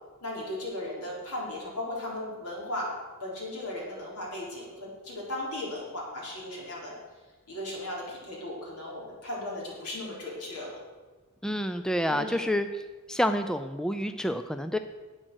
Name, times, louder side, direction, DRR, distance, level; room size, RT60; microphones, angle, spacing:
voice 1, 0.2-2.9 3.2-6.9 7.5-10.7 12.1-12.5, left 1 dB, 80° left, -4 dB, 4.2 m, -36 dB
voice 2, 11.4-12.8 13.1-14.8, equal, 5° left, 9 dB, 0.4 m, -28 dB
10.0 x 8.9 x 6.3 m, 1.3 s
head